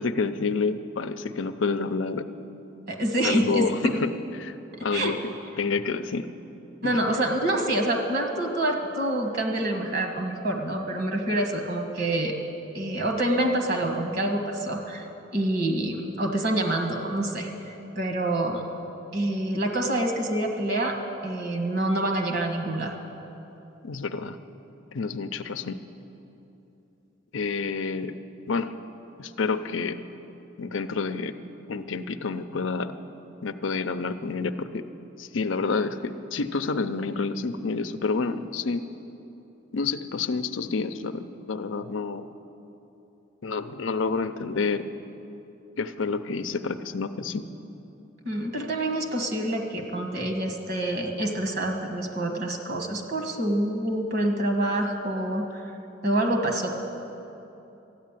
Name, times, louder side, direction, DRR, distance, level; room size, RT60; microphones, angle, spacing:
voice 1, 0.0-2.3 3.2-4.1 4.4-4.5 4.8-6.3 6.8-7.0 23.8-24.4 24.9-25.8 27.3-28.1 28.5-28.7 29.2-30.0 30.6-31.3 31.7-33.0 33.4-34.8 35.2-38.8 39.7-42.3 43.4-44.9 45.8-47.5, left 4 dB, 75° left, 10 dB, 0.6 m, -29 dB
voice 2, 2.9-4.0 4.7-5.1 6.8-12.3 12.7-15.1 15.3-18.6 19.1-21.0 21.2-22.9 48.2-55.7 56.0-56.7, right 1 dB, 55° right, 3 dB, 1.7 m, -27 dB
13.5 x 9.4 x 9.0 m, 3.0 s
head